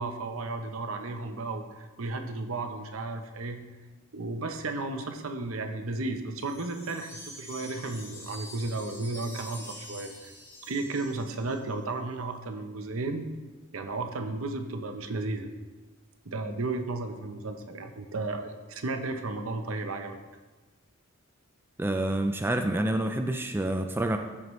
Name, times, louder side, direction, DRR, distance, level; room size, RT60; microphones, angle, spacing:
voice 1, 0.0-3.6 4.1-10.3 10.6-13.3 13.7-15.5 16.2-20.2, right 2 dB, 70° right, 6 dB, 0.8 m, -34 dB
sound 1, 6.4-11.7, left 1 dB, 10° left, 2.6 m, -46 dB
voice 2, 21.8-24.2, right 1 dB, 10° right, 5 dB, 0.4 m, -28 dB
14.0 x 4.7 x 3.1 m, 1.3 s
head